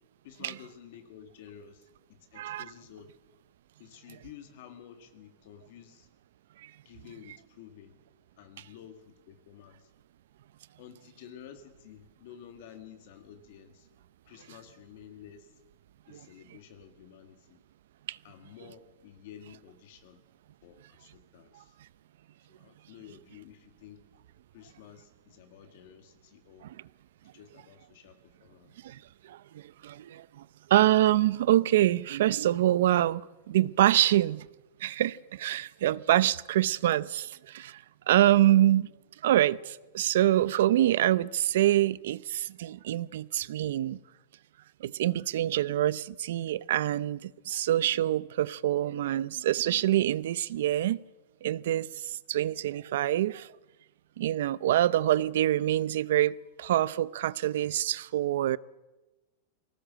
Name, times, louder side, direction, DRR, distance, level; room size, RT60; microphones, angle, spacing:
voice 1, 0.2-3.1 3.8-6.1 6.9-8.0 8.4-9.9 10.8-13.9 14.3-15.6 16.1-17.6 18.2-20.2 20.6-21.8 22.5-24.1 24.5-26.7 27.2-28.7, left 9 dB, 55° left, 1.9 m, -51 dB
voice 2, 29.8-30.4 30.7-34.5 34.8-38.9 39.2-44.0 44.8-51.0 51.4-53.5 54.2-58.6, right 13 dB, 70° right, 0.6 m, -26 dB
21.0 x 18.0 x 7.6 m
supercardioid pair, 165°, 0 cm